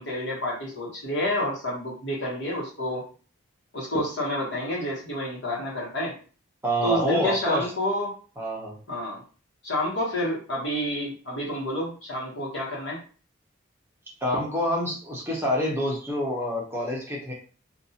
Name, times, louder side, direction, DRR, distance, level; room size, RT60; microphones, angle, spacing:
voice 1, 0.0-3.0 3.7-6.1 6.8-8.1 8.9-9.2 9.6-13.0, left 1 dB, 65° left, -4 dB, 1.2 m, -29 dB
voice 2, 6.6-7.7 8.4-8.8 14.2-17.3, equal, 10° right, -2 dB, 0.6 m, -27 dB
2.6 x 2.3 x 2.7 m, 0.39 s
head